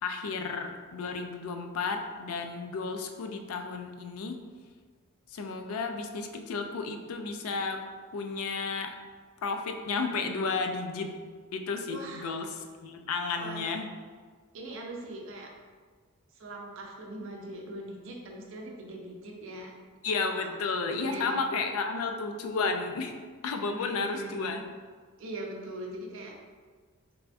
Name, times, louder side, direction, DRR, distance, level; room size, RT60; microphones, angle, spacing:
voice 1, 0.0-4.4 5.3-7.8 8.1-9.0 9.4-11.1 11.5-13.9 20.0-23.1 23.4-24.6, left 4 dB, 75° left, 5 dB, 0.4 m, -32 dB
voice 2, 11.9-12.4 13.4-13.6 14.5-15.5 16.3-19.7 20.4-20.5 20.8-21.3 23.7-24.6 25.2-26.4, right 1 dB, 60° right, 0 dB, 0.5 m, -41 dB
3.4 x 2.5 x 3.4 m, 1.5 s
head